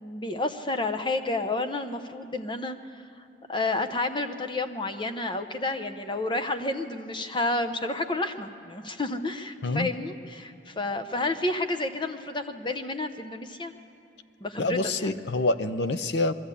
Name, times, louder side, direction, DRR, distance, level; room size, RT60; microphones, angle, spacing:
voice 1, 0.0-2.8 3.5-13.7 14.4-15.1, left 2 dB, 25° left, 7 dB, 0.9 m, -30 dB
voice 2, 14.6-16.3, left 2 dB, 70° left, 12 dB, 0.7 m, -26 dB
22.5 x 13.5 x 8.4 m, 2.6 s
head